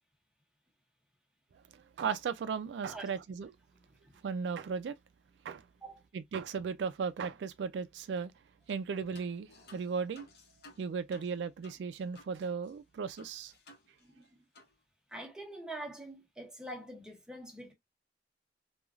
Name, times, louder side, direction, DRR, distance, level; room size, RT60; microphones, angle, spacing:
voice 1, 1.7-3.5 4.2-4.9 5.4-5.6 6.1-8.3 8.7-10.3 10.8-13.5, right 6 dB, 75° right, 0.3 m, -36 dB
sound 1, 8.7-8.9 9.1-12.4 12.6-12.7 13.2-14.3 14.5-14.7, left 2 dB, 65° left, 0.8 m, -57 dB
voice 2, 14.0-14.4 15.1-17.7, right 1 dB, 5° right, 0.8 m, -45 dB
3.1 x 2.3 x 2.2 m
head